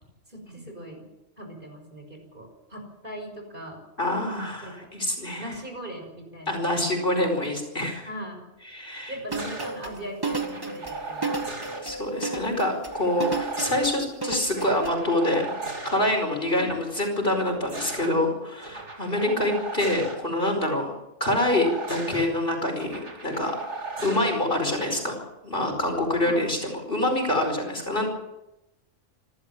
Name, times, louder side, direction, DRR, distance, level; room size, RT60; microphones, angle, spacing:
voice 1, 0.3-1.1 1.4-3.8 4.6-4.9 5.4-7.3 8.0-8.4 9.1-11.5 16.5-16.8 19.2-19.5 24.0-24.3 26.2-26.6 27.9-28.1, equal, 40° right, 3 dB, 6.0 m, -39 dB
voice 2, 4.0-5.5 6.5-8.1 8.7-9.1 11.8-15.6 15.8-20.9 21.2-23.6 24.0-28.1, left 1 dB, 45° left, 2 dB, 5.1 m, -26 dB
sound 1, 9.3-14.9, right 3 dB, 15° right, 2.0 m, -32 dB
sound 2, 9.3-9.7 10.3-11.8 12.9-13.9 14.4-16.0 17.3-18.1 18.6-20.2 21.2-22.2 22.8-24.4 25.6-26.0, right 3 dB, 65° right, 4.0 m, -36 dB
27.5 x 13.0 x 7.4 m, 0.92 s
omnidirectional pair, 1.3 m